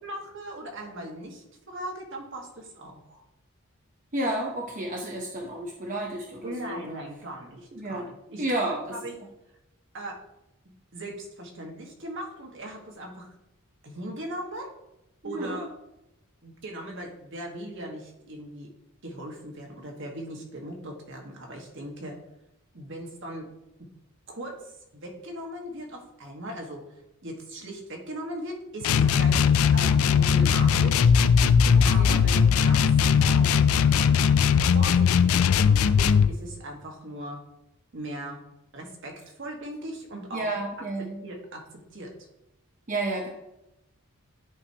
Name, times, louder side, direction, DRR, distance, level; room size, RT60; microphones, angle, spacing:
voice 1, 0.0-3.2 6.4-8.6 8.9-9.1 9.9-10.2 10.9-13.3 13.8-14.7 15.2-15.7 16.4-18.7 19.0-22.2 22.7-23.5 24.3-26.8 27.2-31.1 31.8-33.6 34.7-37.4 37.9-38.4 38.7-40.5 41.2-41.6 41.9-42.1, right 1 dB, 60° right, 1 dB, 1.6 m, -39 dB
voice 2, 4.1-7.0 7.7-8.1 8.4-9.0 15.2-15.6 31.7-32.2 40.3-41.2 42.9-43.3, right 1 dB, 35° right, -1 dB, 0.9 m, -31 dB
sound 1, 28.8-36.3, left 6 dB, 70° left, 0.4 m, -19 dB
10.5 x 5.1 x 2.9 m, 0.90 s
head